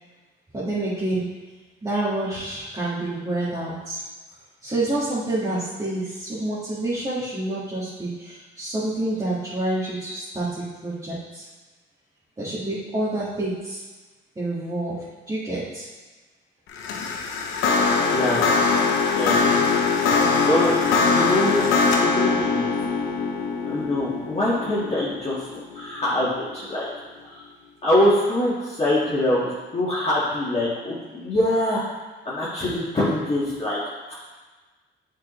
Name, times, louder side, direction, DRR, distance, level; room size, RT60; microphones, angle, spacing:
voice 1, 0.5-1.3 1.8-4.0 4.6-11.5 12.4-13.8 14.4-15.0 15.3-15.8, right 2 dB, 20° right, -10 dB, 1.8 m, -28 dB
sound 1, 16.7-26.1, left 4 dB, 90° left, 0.8 m, -22 dB
voice 2, 18.1-18.4 19.1-19.4 20.4-20.8 21.1-21.7 22.0-22.8 23.7-25.4 25.7-26.9 27.2-27.4 27.8-31.8 32.3-33.8, left 1 dB, 30° left, -9 dB, 1.8 m, -23 dB
7.5 x 4.7 x 3.2 m, 1.3 s
cardioid pair, 90°, 20 cm